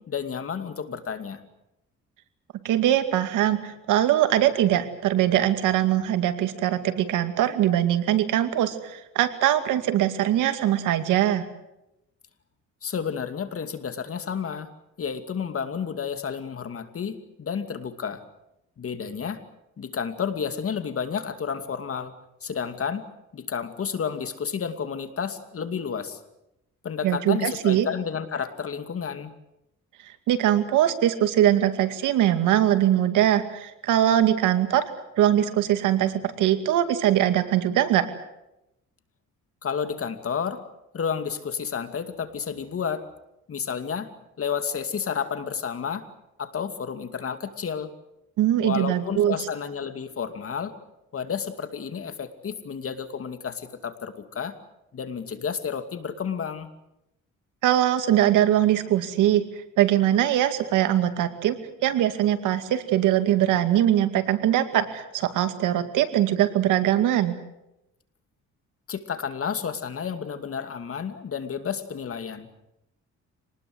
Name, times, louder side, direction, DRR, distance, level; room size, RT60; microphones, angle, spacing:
voice 1, 0.0-1.4 12.8-14.7 15.0-18.2 18.8-19.4 19.8-22.1 22.4-23.1 23.3-26.2 26.8-29.3 39.6-40.6 40.9-43.1 43.5-44.1 44.4-46.1 46.4-47.9 48.6-50.7 51.1-54.6 54.9-56.7 68.9-72.5, left 7 dB, 50° left, 9 dB, 2.6 m, -31 dB
voice 2, 2.6-11.5 27.0-27.9 30.3-34.9 35.2-38.1 48.4-49.4 57.6-59.4 59.8-61.6 61.8-67.3, right 12 dB, 90° right, 9 dB, 2.3 m, -22 dB
26.5 x 19.5 x 8.0 m, 0.87 s
cardioid pair, 90°, 30 cm